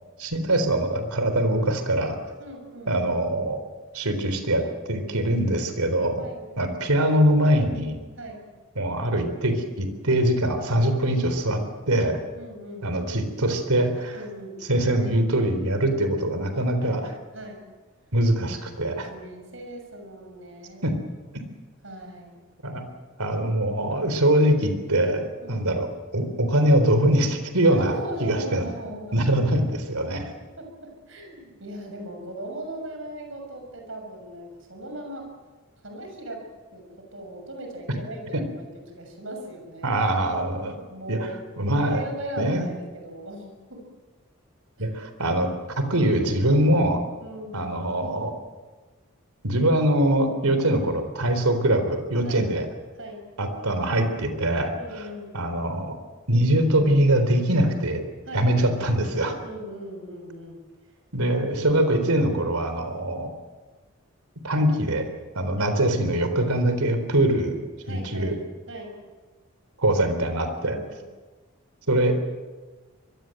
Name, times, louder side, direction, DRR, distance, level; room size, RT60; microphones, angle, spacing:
voice 1, 0.2-2.2 2.9-3.6 3.9-4.6 4.9-6.2 6.6-8.0 8.8-12.2 12.8-14.2 14.7-17.1 18.1-19.1 20.8-20.9 22.6-22.8 23.2-25.9 26.1-27.9 28.2-28.6 29.1-30.3 38.3-38.4 39.8-40.8 41.1-41.2 41.6-42.0 42.4-42.6 44.8-45.5 45.8-47.0 47.5-48.3 49.4-52.7 53.4-55.1 55.3-56.0 56.3-58.0 58.3-59.4 61.1-63.3 64.4-65.1 65.4-67.6 67.9-68.3 69.8-70.8 71.9-72.2, right 1 dB, 85° right, 8 dB, 4.0 m, -23 dB
voice 2, 2.4-2.9 6.2-6.5 8.2-8.5 12.3-12.9 14.1-14.6 16.8-17.0 17.3-17.6 18.7-21.0 21.8-22.4 25.4-25.7 27.6-29.5 30.1-35.3 35.8-36.5 36.7-40.0 40.9-41.4 41.8-43.8 44.8-44.9 47.2-47.7 52.2-52.5 52.9-53.3 54.7-55.4 58.3-58.8 59.4-60.6 65.6-65.8 67.8-68.4 68.7-69.0 70.6-71.0, right 1 dB, 60° right, 3 dB, 6.7 m, -38 dB
25.5 x 22.0 x 7.8 m, 1.3 s
head